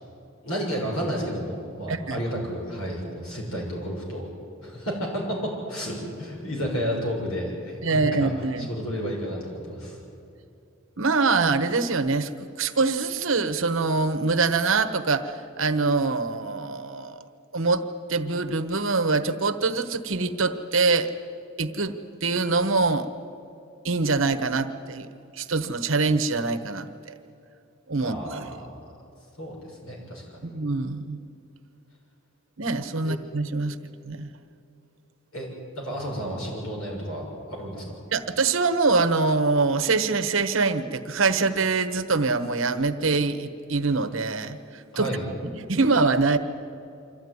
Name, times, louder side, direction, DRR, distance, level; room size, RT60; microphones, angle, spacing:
voice 1, 0.4-4.3 4.6-8.3 8.6-10.0 28.0-28.9 29.4-30.5 33.0-33.2 35.3-38.0 44.9-45.2, equal, 85° left, -1 dB, 6.6 m, -32 dB
voice 2, 1.9-2.2 7.8-8.7 11.0-12.3 12.6-17.2 17.5-21.1 21.6-23.1 23.8-25.1 25.3-27.1 27.9-28.4 30.4-31.2 32.6-33.8 34.0-34.3 38.1-45.1 45.5-46.4, right 3 dB, 65° right, 9 dB, 1.1 m, -24 dB
25.0 x 14.5 x 9.6 m, 2.6 s
head